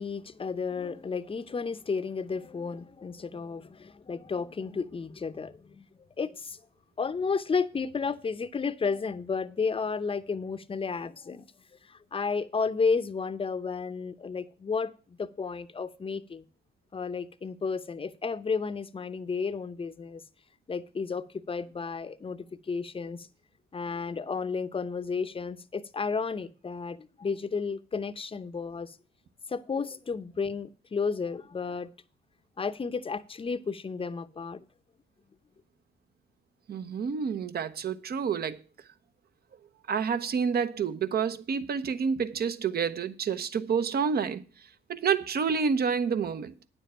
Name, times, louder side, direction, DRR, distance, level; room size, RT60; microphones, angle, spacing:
voice 1, 0.0-5.8 6.2-6.6 7.0-11.5 11.9-16.4 16.9-20.2 20.7-23.3 23.7-29.0 29.5-31.9 32.6-34.6, left 5 dB, 25° left, 0.7 m, -32 dB
voice 2, 36.7-38.6 39.9-44.4 44.9-46.5, right 6 dB, 50° right, 0.9 m, -28 dB
9.5 x 7.3 x 5.6 m
cardioid pair, 90°, 20 cm